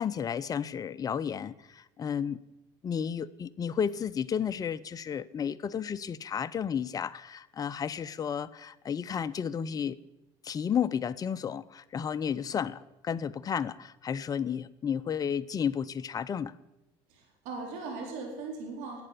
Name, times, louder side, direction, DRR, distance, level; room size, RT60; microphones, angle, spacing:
voice 1, 0.0-2.4 2.8-10.0 10.4-16.6, left 7 dB, 30° left, 0.6 m, -32 dB
voice 2, 17.1-19.0, right 3 dB, 80° right, 4.2 m, -39 dB
11.5 x 8.6 x 9.8 m
supercardioid pair, 105°, 12 cm